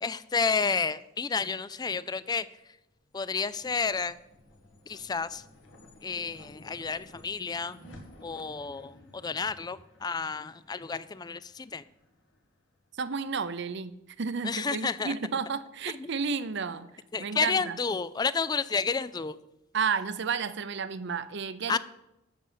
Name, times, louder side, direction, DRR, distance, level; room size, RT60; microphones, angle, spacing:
voice 1, 0.0-2.5 3.1-4.2 4.9-5.4 6.0-7.8 8.2-11.8 14.4-15.2 15.9-16.1 16.4-16.5 17.1-19.4 21.7-21.8, left 5 dB, 20° left, 17 dB, 0.4 m, -31 dB
sound 1, 2.9-13.4, left 1 dB, 70° left, 2.1 m, -55 dB
voice 2, 13.0-16.9 17.2-17.8 19.7-21.8, right 5 dB, 60° right, 14 dB, 0.6 m, -32 dB
13.0 x 5.4 x 7.4 m, 0.90 s
head